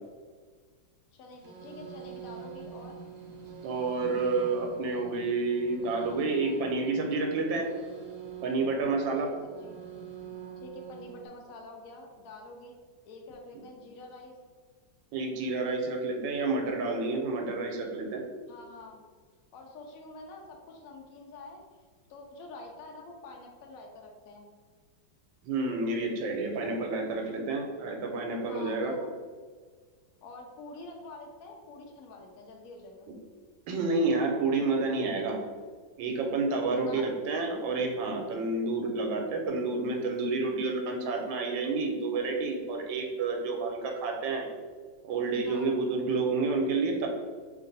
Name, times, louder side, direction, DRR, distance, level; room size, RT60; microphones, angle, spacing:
voice 1, 1.1-3.0 9.0-9.8 10.6-12.7 13.0-14.4 18.5-19.0 19.5-24.5 28.5-29.1 30.2-33.1 36.7-37.2 45.4-45.8, left 2 dB, 80° left, 1 dB, 0.8 m, -47 dB
sound 1, 1.3-11.3, right 7 dB, 65° right, 1.0 m, -45 dB
voice 2, 3.6-7.7 8.4-9.3 15.1-18.2 25.4-28.9 33.7-35.4 36.0-44.4 45.0-47.1, right 3 dB, 85° right, 2 dB, 1.3 m, -29 dB
3.0 x 2.5 x 3.9 m, 1.5 s
omnidirectional pair, 2.0 m